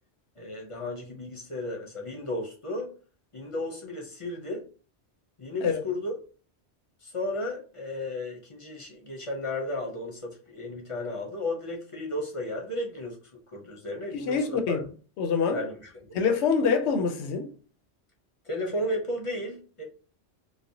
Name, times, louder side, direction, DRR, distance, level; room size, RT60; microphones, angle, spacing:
voice 1, 0.4-2.9 3.3-4.6 5.4-6.1 7.0-13.2 13.5-14.8 15.5-16.2 18.5-19.8, left 1 dB, 35° left, 0.6 m, -34 dB
voice 2, 14.1-14.8 15.2-15.6 16.1-17.5, left 5 dB, 80° left, 0.9 m, -25 dB
3.2 x 2.0 x 2.6 m
omnidirectional pair, 1.1 m